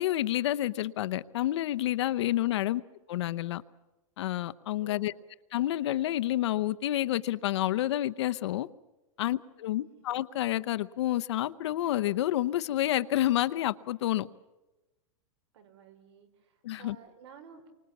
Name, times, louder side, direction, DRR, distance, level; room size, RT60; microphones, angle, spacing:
voice 1, 0.0-2.8 3.1-3.6 4.2-5.1 5.5-8.7 9.2-14.3 16.6-17.0, left 14 dB, 55° left, 0.8 m, -29 dB
voice 2, 4.7-5.2 9.3-9.4 10.0-10.1 15.5-17.7, right 6 dB, 50° right, 4.5 m, -53 dB
29.0 x 25.0 x 7.2 m
supercardioid pair, 170°, 17 cm